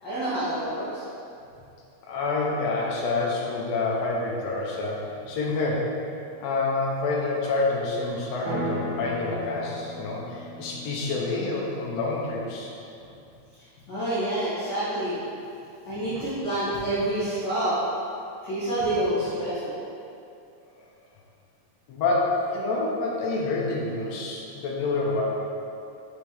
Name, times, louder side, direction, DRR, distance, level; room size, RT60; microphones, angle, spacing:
voice 1, 0.0-1.0 13.9-15.2 15.9-17.8 18.4-19.8, right 1 dB, 50° left, -11 dB, 1.3 m, -27 dB
voice 2, 2.0-5.9 6.4-12.7 21.9-25.2, left 3 dB, 70° left, -3 dB, 1.8 m, -27 dB
sound 1, 8.5-12.6, equal, 75° right, 2.3 m, -37 dB
6.2 x 5.0 x 3.6 m, 2.6 s
omnidirectional pair, 3.6 m